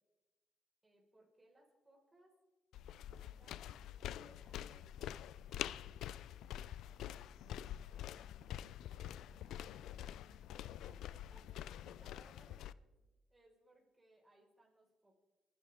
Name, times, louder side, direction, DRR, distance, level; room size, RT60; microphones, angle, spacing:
voice 1, 0.8-2.3 3.0-5.3 10.8-15.2, right 1 dB, 15° right, -1 dB, 5.0 m, -68 dB
sound 1, 2.7-12.7, left 11 dB, 80° left, 0.4 m, -46 dB
voice 2, 7.9-9.8 11.9-12.1, right 3 dB, 70° right, -1 dB, 5.1 m, -74 dB
26.5 x 11.0 x 3.6 m, 1.2 s
cardioid pair, 90°, 0 cm